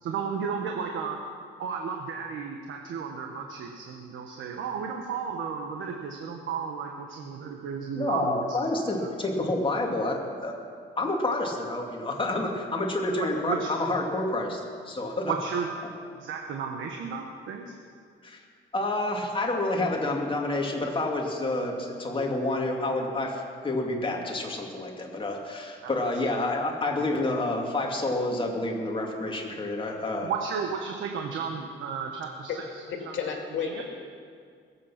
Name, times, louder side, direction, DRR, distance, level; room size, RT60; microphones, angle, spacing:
voice 1, 0.0-1.2 1.6-8.4 9.0-9.1 13.1-13.7 15.3-15.7 16.2-17.7 25.8-25.9 30.2-33.1 33.6-33.8, right 6 dB, 80° right, 2 dB, 1.3 m, -33 dB
voice 2, 7.9-10.5 11.0-15.3 18.2-18.4 18.7-30.3, left 2 dB, 25° left, 0 dB, 2.7 m, -29 dB
voice 3, 32.9-33.8, left 6 dB, 75° left, 2 dB, 2.4 m, -32 dB
21.0 x 8.6 x 5.9 m, 2.1 s
cardioid pair, 90°, 20 cm